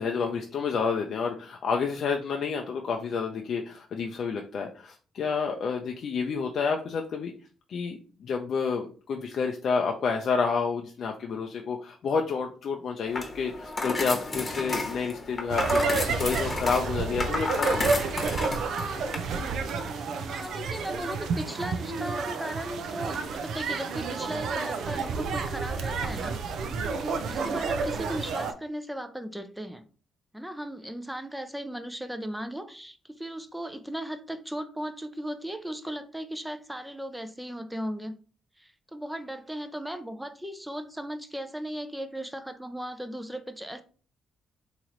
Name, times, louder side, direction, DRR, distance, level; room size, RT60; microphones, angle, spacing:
voice 1, 0.0-7.3 7.7-17.7, left 5 dB, 60° left, 0.4 m, -29 dB
sound 1, 13.1-19.2, left 2 dB, 30° left, 1.0 m, -32 dB
sound 2, 15.5-28.5, right 4 dB, 70° right, 0.5 m, -30 dB
voice 2, 20.2-26.4 27.0-29.8 30.3-38.1 38.6-43.8, equal, 5° right, 0.5 m, -37 dB
3.0 x 3.0 x 3.8 m
cardioid pair, 90°, 0 cm